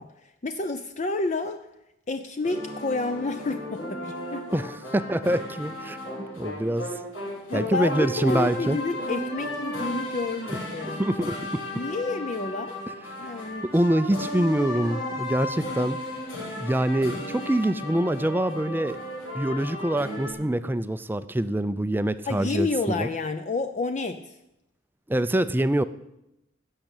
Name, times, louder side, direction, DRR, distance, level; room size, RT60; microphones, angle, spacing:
voice 1, 0.0-1.7 2.1-4.5 7.5-11.0 11.7-12.8 13.2-13.7 22.3-24.4, left 3 dB, 35° left, 9 dB, 0.6 m, -30 dB
sound 1, 2.4-20.3, left 1 dB, 85° left, 6.7 m, -35 dB
voice 2, 4.5-6.0 6.4-6.9 7.5-8.8 10.9-11.6 13.6-16.0 16.6-19.0 19.3-23.1 25.1-25.8, right 1 dB, 10° right, 13 dB, 0.4 m, -25 dB
16.5 x 6.6 x 8.9 m, 0.87 s
head